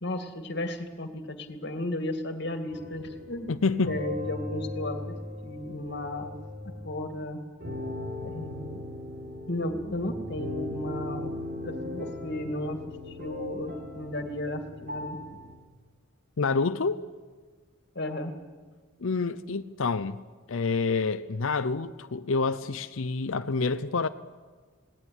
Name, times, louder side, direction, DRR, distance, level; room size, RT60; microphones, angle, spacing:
voice 1, 0.0-3.5 3.9-5.1 5.4-6.3 6.6-7.4 8.2-8.8 9.5-11.3 11.6-12.8 13.1-15.2 17.9-18.3, left 1 dB, 50° left, 2.2 m, -34 dB
sound 1, 2.7-7.0 7.6-15.6, left 2 dB, 45° right, 3.9 m, -38 dB
voice 2, 3.5-4.0 16.4-17.0 19.0-24.1, left 4 dB, 70° left, 0.6 m, -28 dB
19.0 x 18.5 x 9.9 m
head